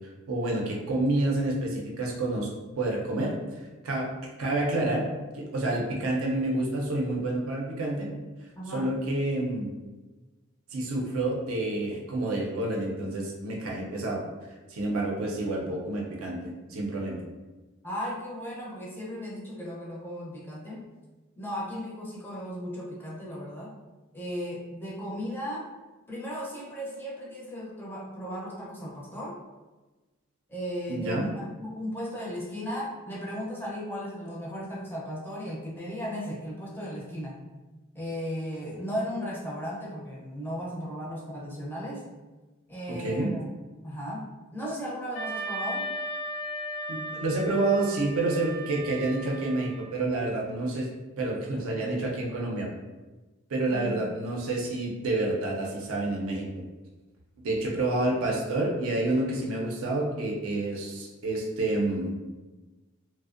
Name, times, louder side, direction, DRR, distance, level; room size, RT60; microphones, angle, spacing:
voice 1, 0.3-2.5 2.8-5.1 5.3-8.1 8.7-9.7 10.7-14.2 14.7-17.2 30.9-31.2 42.9-43.3 46.9-50.9 51.2-52.7 53.5-56.6 57.4-62.1, right 2 dB, 75° right, -1 dB, 0.5 m, -29 dB
voice 2, 8.6-8.9 15.6-15.8 17.8-20.8 21.4-23.7 24.1-25.7 26.1-29.4 30.5-37.4 37.9-42.0 42.7-43.5 43.8-45.9 53.7-54.1, equal, 10° left, -5 dB, 0.4 m, -36 dB
Wind instrument woodwind instrument, 45.1-50.0, right 1 dB, 80° left, 0.4 m, -36 dB
2.6 x 2.0 x 2.4 m, 1.2 s
head